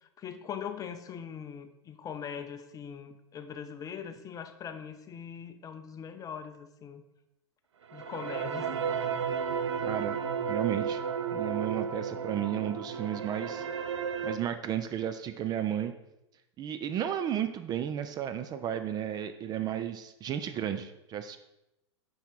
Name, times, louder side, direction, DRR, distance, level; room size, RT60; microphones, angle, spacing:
voice 1, 0.0-7.0 7.9-8.7, left 7 dB, 25° left, 9 dB, 0.6 m, -41 dB
sound 1, 7.8-14.4, right 6 dB, 75° right, 0.6 m, -33 dB
voice 2, 9.8-10.2 10.5-11.0 11.3-13.6 14.2-15.9 16.6-21.4, right 10 dB, 25° right, 9 dB, 0.4 m, -33 dB
5.7 x 5.6 x 4.6 m, 0.89 s
hypercardioid pair, 100°, 15 cm